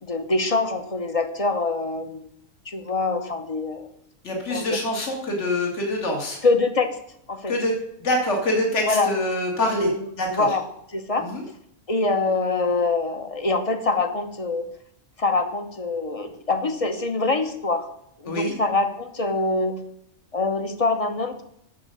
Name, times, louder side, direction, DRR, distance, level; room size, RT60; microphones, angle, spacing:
voice 1, 0.0-2.3 2.7-3.9 4.5-4.8 6.4-7.0 7.3-7.5 8.8-9.1 9.6-10.6 10.9-11.3 11.9-14.7 15.2-17.9 18.2-19.8 20.3-21.4, left 3 dB, 30° left, 7 dB, 0.9 m, -24 dB
voice 2, 4.2-6.4 7.5-7.7 8.0-9.9 10.2-10.5 11.2-11.4 18.3-18.5, left 1 dB, 60° left, 1 dB, 2.2 m, -25 dB
8.3 x 6.8 x 6.4 m, 0.75 s
omnidirectional pair, 1.4 m